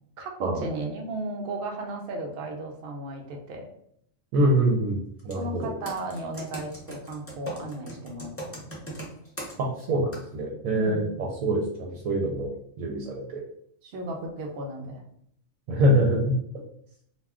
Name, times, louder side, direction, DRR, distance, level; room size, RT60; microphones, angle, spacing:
voice 1, 0.2-3.7 5.4-9.0 10.7-11.1 13.8-15.0, right 2 dB, 60° right, 1 dB, 0.7 m, -35 dB
voice 2, 4.3-5.7 9.6-12.5 12.8-13.4 15.7-16.4, right 1 dB, 80° right, -1 dB, 1.0 m, -25 dB
Computer keyboard, 5.2-5.4 5.9-9.9 10.1-10.2, right 1 dB, 20° left, 0.4 m, -38 dB
2.4 x 2.2 x 3.5 m, 0.70 s
omnidirectional pair, 1.4 m